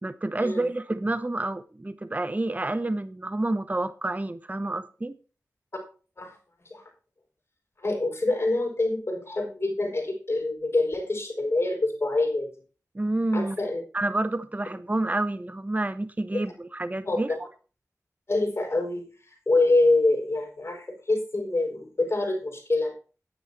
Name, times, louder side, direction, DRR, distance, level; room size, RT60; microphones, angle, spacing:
voice 1, 0.0-5.2 12.9-13.6 13.9-17.3, right 2 dB, 25° right, 13 dB, 0.9 m, -29 dB
voice 2, 7.8-12.5 13.3-13.8 16.3-16.4 17.0-17.4 18.3-19.1 19.5-22.9, left 2 dB, 45° left, 2 dB, 6.2 m, -25 dB
10.5 x 9.4 x 4.3 m, 0.35 s
wide cardioid pair, 55°, 6 cm